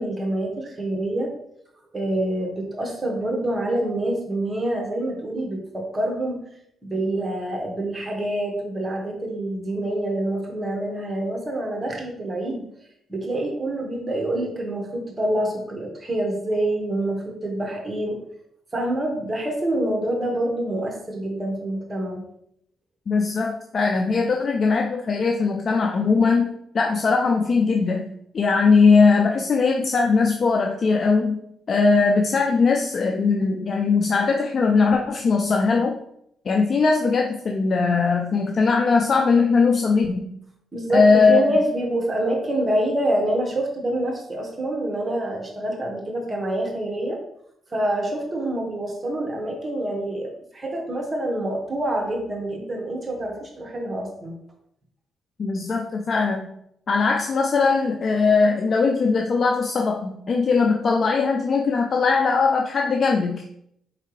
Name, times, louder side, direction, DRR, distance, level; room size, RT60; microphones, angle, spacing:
voice 1, 0.0-1.3 1.9-6.4 6.8-12.6 13.1-18.2 18.7-22.3 40.7-47.2 47.7-54.3, right 1 dB, 25° right, 1 dB, 1.4 m, -26 dB
voice 2, 23.1-28.1 28.3-31.4 31.7-36.0 36.5-40.3 40.9-41.4 55.4-56.5 56.9-63.4, left 4 dB, 50° left, 2 dB, 0.4 m, -20 dB
4.8 x 3.3 x 3.2 m, 0.74 s
supercardioid pair, 70°, 0 cm